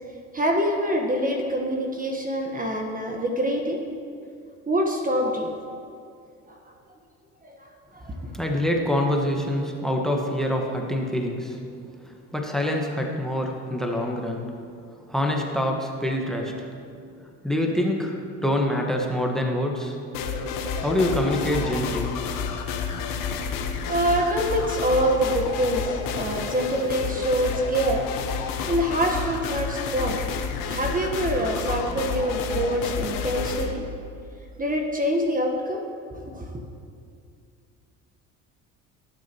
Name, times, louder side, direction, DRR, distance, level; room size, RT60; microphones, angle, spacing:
voice 1, 0.3-3.8 4.7-5.5 6.5-6.6 7.4-8.2 23.6-28.0 28.4-30.2 30.7-33.8 34.6-35.8 36.2-36.6, right 1 dB, 20° right, 2 dB, 1.4 m, -25 dB
voice 2, 8.3-11.6 12.0-14.5 15.1-16.7 17.4-20.0 20.8-22.1, left 1 dB, ahead, 1 dB, 1.5 m, -25 dB
sound 1, 20.1-33.7, left 6 dB, 60° left, 1.2 m, -30 dB
18.0 x 7.5 x 3.0 m, 2.3 s
hypercardioid pair, 70°, 38 cm